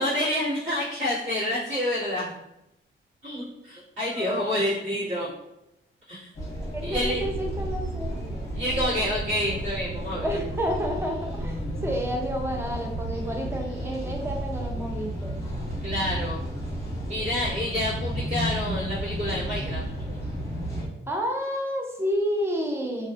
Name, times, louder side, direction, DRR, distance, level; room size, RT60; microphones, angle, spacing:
voice 1, 0.0-2.3 3.2-5.3 6.1-6.3 6.8-7.2 8.5-10.3 15.8-16.4 17.1-19.8, left 1 dB, 60° right, -14 dB, 1.4 m, -28 dB
voice 2, 4.1-4.6 6.7-8.2 8.7-9.1 10.2-15.3 21.1-23.1, equal, 10° right, 1 dB, 0.5 m, -30 dB
sound 1, 6.3-20.9, right 1 dB, 15° left, 0.8 m, -32 dB
2.5 x 2.3 x 2.3 m, 0.86 s
cardioid pair, 105°, 21 cm